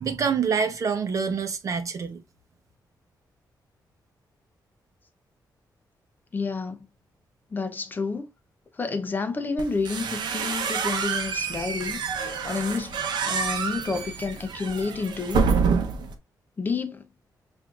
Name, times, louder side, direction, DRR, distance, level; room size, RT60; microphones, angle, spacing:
voice 1, 0.0-2.2, right 6 dB, 45° right, 0.7 m, -26 dB
voice 2, 6.3-6.9 7.5-8.3 8.7-12.0 12.4-15.4 16.6-17.1, left 4 dB, 25° left, 0.5 m, -30 dB
sound 1, 9.6-16.1, right 5 dB, 90° right, 0.7 m, -27 dB
6.1 x 2.6 x 2.3 m
wide cardioid pair, 165°, 7 cm